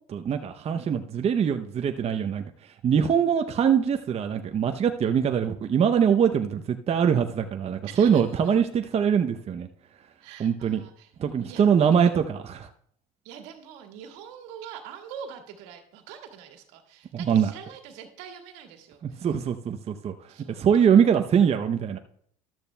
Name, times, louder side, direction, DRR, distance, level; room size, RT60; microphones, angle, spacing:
voice 1, 0.1-9.7 10.4-10.8 11.2-12.7 17.1-17.5 19.2-22.0, right 7 dB, 35° right, 6 dB, 0.6 m, -23 dB
voice 2, 7.8-8.2 10.2-11.1 11.5-11.6 13.3-19.3 20.3-20.7, right 8 dB, 75° right, 4 dB, 1.7 m, -44 dB
13.0 x 12.0 x 2.2 m, 0.66 s
supercardioid pair, 80°, 18 cm